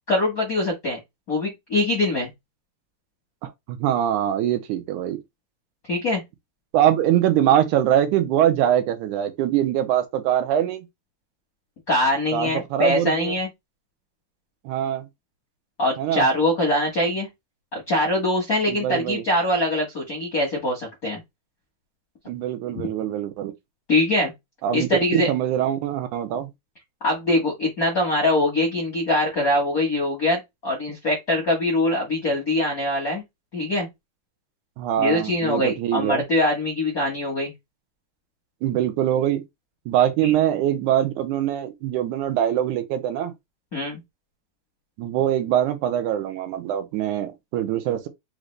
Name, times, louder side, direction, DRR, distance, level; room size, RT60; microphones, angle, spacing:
voice 1, 0.1-1.0 1.3-2.3 5.9-6.2 11.9-13.5 15.8-17.3 17.7-21.2 23.9-24.3 24.7-25.3 27.0-33.2 33.5-33.9 35.0-37.5 40.2-40.3 43.7-44.0, left 1 dB, 55° left, 1.0 m, -23 dB
voice 2, 3.4-5.2 6.7-10.9 12.3-13.3 14.7-15.1 16.0-16.3 18.7-19.2 22.3-23.5 24.6-26.5 34.8-36.2 38.6-39.4 39.9-43.3 45.0-48.1, right 11 dB, 80° right, 2.1 m, -23 dB
5.1 x 2.5 x 3.2 m
omnidirectional pair, 3.6 m